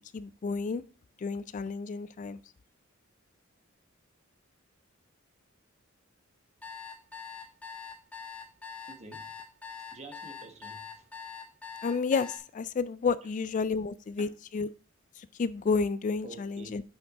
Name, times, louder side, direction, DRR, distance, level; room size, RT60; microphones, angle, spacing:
voice 1, 0.1-0.8 1.2-2.4 11.8-14.7 15.2-16.8, left 4 dB, 40° left, 0.3 m, -31 dB
sound 1, 6.6-12.4, left 6 dB, 5° left, 1.3 m, -43 dB
voice 2, 8.9-9.3 9.9-11.1 14.2-14.3 16.2-16.8, right 2 dB, 35° right, 1.3 m, -48 dB
7.9 x 6.0 x 3.6 m
head